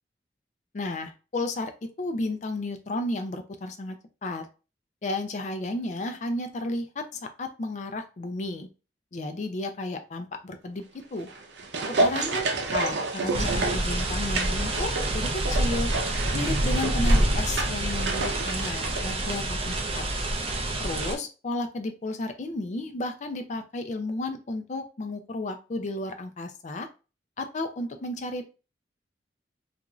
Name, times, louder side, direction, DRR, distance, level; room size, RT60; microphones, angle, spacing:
voice 1, 0.7-1.7 2.0-4.5 5.0-8.7 9.1-11.3 12.0-12.4 12.7-15.9 16.3-20.0 20.8-26.9 27.4-28.4, left 2 dB, 40° left, 7 dB, 0.4 m, -33 dB
sound 1, 11.2-19.8 20.0-20.1, right 3 dB, 80° right, 0.6 m, -30 dB
sound 2, 13.3-21.2, right 1 dB, 30° right, 0.5 m, -27 dB
2.5 x 2.4 x 3.0 m, 0.32 s
head